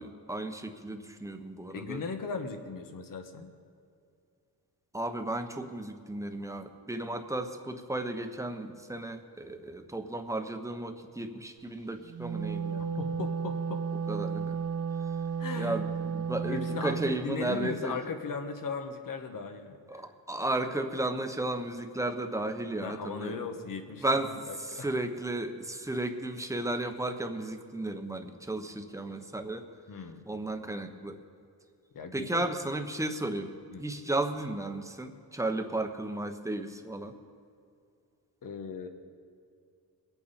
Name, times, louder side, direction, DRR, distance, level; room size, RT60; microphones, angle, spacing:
voice 1, 0.0-2.0 4.9-13.0 14.1-14.6 15.6-18.0 19.9-23.4 24.0-29.6 30.3-31.2 32.1-33.5 33.8-37.1, right 2 dB, 10° right, 5 dB, 1.0 m, -34 dB
voice 2, 1.7-3.5 13.0-13.8 15.4-15.8 16.4-20.0 22.8-24.9 29.9-30.2 31.9-32.5 33.7-33.8 38.4-38.9, left 5 dB, 60° left, 6 dB, 1.4 m, -38 dB
Wind instrument woodwind instrument, 12.0-17.2, right 6 dB, 80° right, 1.4 m, -33 dB
22.0 x 8.8 x 4.3 m, 2.4 s
cardioid pair, 100°, 37 cm